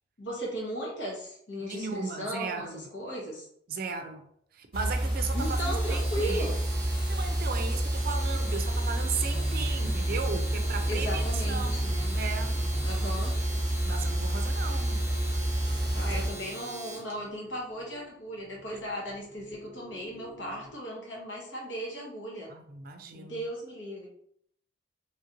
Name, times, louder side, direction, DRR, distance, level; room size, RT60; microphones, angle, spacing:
voice 1, 0.2-3.5 5.3-6.6 10.9-12.2 12.8-13.3 15.9-22.5 23.1-24.1, equal, 75° left, -2 dB, 1.1 m, -36 dB
voice 2, 1.6-2.8 3.7-4.2 4.5-6.5 7.1-12.6 13.8-15.0 15.6-16.2 18.7-18.8 22.5-23.4, right 5 dB, 50° right, 6 dB, 0.4 m, -36 dB
sound 1, 4.7-16.3, right 1 dB, 25° left, 1.2 m, -29 dB
Domestic sounds home sounds, 5.3-17.1, right 2 dB, 15° right, 1.1 m, -42 dB
sound 2, 9.0-20.7, left 1 dB, 50° left, 1.3 m, -48 dB
2.9 x 2.5 x 2.9 m, 0.69 s
head